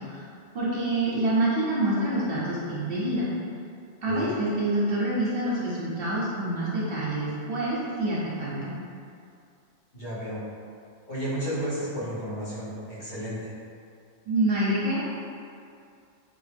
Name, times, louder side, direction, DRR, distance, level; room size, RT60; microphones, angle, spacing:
voice 1, 0.5-3.3 4.0-8.7 14.3-15.1, right 1 dB, 60° right, -7 dB, 0.9 m, -27 dB
voice 2, 9.9-10.4 11.1-13.4, equal, 45° left, -11 dB, 1.1 m, -32 dB
3.6 x 2.5 x 3.4 m, 2.4 s
omnidirectional pair, 1.2 m